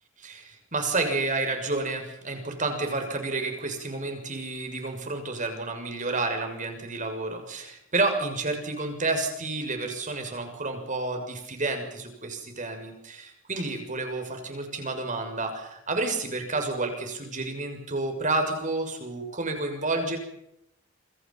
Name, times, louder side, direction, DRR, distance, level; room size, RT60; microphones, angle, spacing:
voice 1, 0.2-20.2, right 3 dB, 40° right, 5 dB, 6.7 m, -30 dB
28.0 x 25.5 x 5.8 m, 0.81 s
head